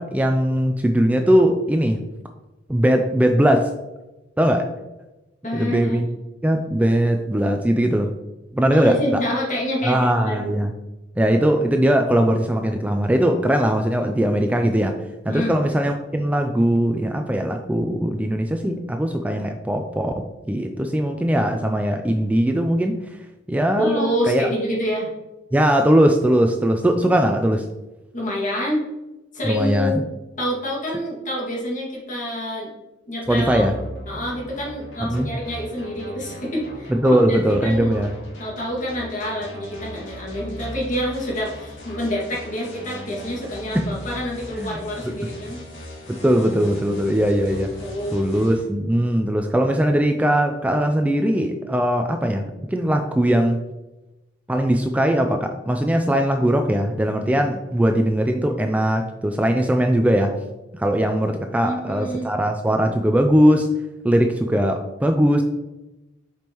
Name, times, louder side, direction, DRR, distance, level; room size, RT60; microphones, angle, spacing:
voice 1, 0.0-2.0 2.7-3.7 4.4-4.7 5.5-6.1 6.4-8.1 8.5-8.9 9.8-10.7 11.2-14.9 15.3-20.1 20.5-23.0 23.5-24.5 25.5-27.6 29.5-30.0 33.3-33.7 35.1-35.3 36.9-38.1 43.7-43.8 44.6-44.8 46.2-47.7 48.1-52.4 52.7-53.6 54.5-60.3 60.7-63.7 64.0-65.4, equal, 10° right, 5 dB, 0.4 m, -20 dB
voice 2, 5.4-6.0 8.7-10.5 15.3-15.5 23.8-25.1 28.1-28.8 29.3-30.0 30.4-32.7 33.1-33.6 34.0-38.0 38.4-45.6 47.8-48.2 61.6-62.3, equal, 45° left, -4 dB, 2.1 m, -27 dB
sound 1, 33.2-48.6, equal, 90° left, 2.0 m, -38 dB
7.4 x 5.3 x 3.0 m, 1.0 s
head